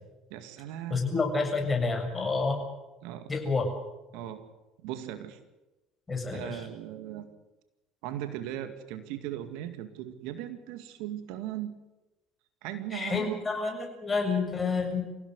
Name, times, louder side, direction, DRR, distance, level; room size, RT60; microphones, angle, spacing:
voice 1, 0.3-1.1 3.0-3.3 4.1-4.4 4.8-5.4 6.3-7.3 8.0-11.7 12.6-13.4, right 12 dB, 65° right, 9 dB, 2.1 m, -38 dB
voice 2, 0.9-2.6 3.3-3.6 6.1-6.6 12.9-15.1, left 4 dB, 25° left, 4 dB, 7.3 m, -29 dB
26.5 x 16.5 x 8.1 m, 1.0 s
hypercardioid pair, 65°, 0 cm